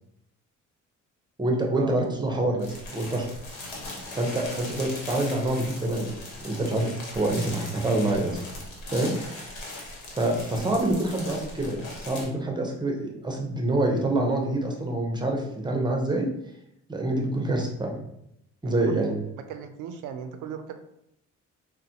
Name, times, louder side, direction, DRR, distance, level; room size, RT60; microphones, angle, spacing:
voice 1, 1.4-3.3 4.1-6.1 6.4-8.4 8.9-9.5 10.2-16.3 16.9-18.0 18.6-19.2, right 1 dB, 15° right, 0 dB, 0.7 m, -26 dB
sound 1, 2.6-12.3, left 2 dB, 85° left, 1.0 m, -39 dB
voice 2, 18.6-19.1 19.5-20.7, right 8 dB, 85° right, 8 dB, 0.5 m, -37 dB
4.0 x 2.1 x 2.8 m, 0.77 s
cardioid pair, 90°, 30 cm